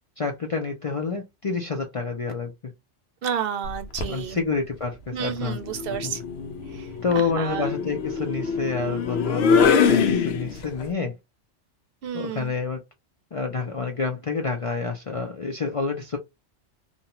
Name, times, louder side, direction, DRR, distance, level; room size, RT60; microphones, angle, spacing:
voice 1, 0.2-2.7 4.1-5.6 6.0-6.1 7.0-11.2 12.1-12.8 13.3-16.2, left 4 dB, 45° left, 0.4 m, -28 dB
voice 2, 3.2-4.4 5.1-6.2 6.7-6.9 7.2-7.7 12.0-12.5, right 8 dB, 60° right, 0.7 m, -31 dB
sound 1, 3.7-4.2 5.6-10.8, left 6 dB, 65° left, 0.8 m, -24 dB
2.6 x 2.2 x 2.8 m
omnidirectional pair, 1.2 m